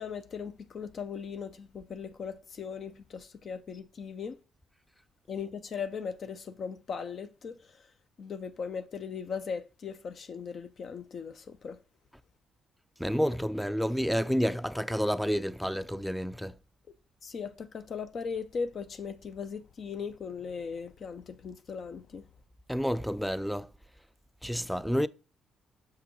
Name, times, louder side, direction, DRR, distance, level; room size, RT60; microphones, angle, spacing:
voice 1, 0.0-4.4 5.3-7.9 8.2-11.8 17.2-22.2, left 6 dB, 55° left, 0.5 m, -38 dB
voice 2, 13.0-16.6 22.7-23.7 24.4-25.1, equal, ahead, 0.4 m, -29 dB
6.5 x 5.8 x 3.0 m
hypercardioid pair, 55°, 0 cm